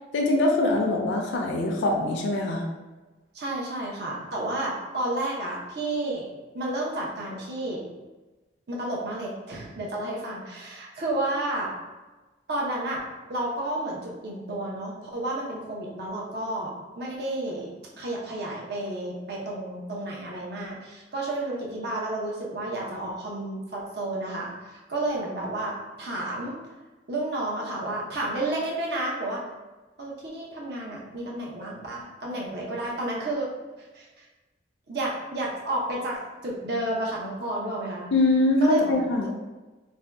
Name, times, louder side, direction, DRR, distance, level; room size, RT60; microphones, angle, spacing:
voice 1, 0.1-2.6 38.1-39.3, left 2 dB, 85° left, 1 dB, 0.4 m, -23 dB
voice 2, 3.3-7.8 8.7-11.7 12.5-13.0 13.3-17.7 18.0-26.5 27.1-29.4 30.0-33.5 33.9-34.2 34.9-38.1 38.6-38.9, right 1 dB, 60° right, -3 dB, 0.7 m, -31 dB
2.6 x 2.2 x 3.4 m, 1.2 s
head